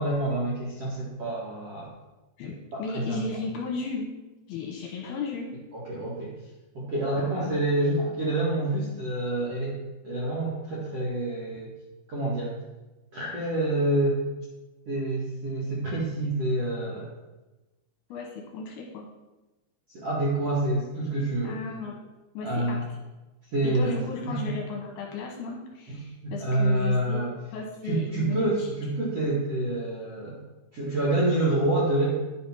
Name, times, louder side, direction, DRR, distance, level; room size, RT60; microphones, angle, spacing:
voice 1, 0.0-1.9 2.7-3.2 5.7-6.3 6.7-9.8 10.0-11.7 12.1-12.6 13.1-14.3 14.8-17.1 19.9-21.6 22.4-22.8 23.5-24.0 24.3-24.5 25.9-27.3 27.8-30.4 30.7-32.1, right 1 dB, 60° right, -6 dB, 1.7 m, -27 dB
voice 2, 2.4-4.1 4.5-5.5 7.1-7.6 18.1-19.1 21.4-21.9 22.3-22.8 23.6-27.3 27.5-28.7, left 4 dB, 70° left, 0 dB, 2.7 m, -35 dB
10.5 x 6.1 x 5.7 m, 1.1 s
omnidirectional pair, 5.6 m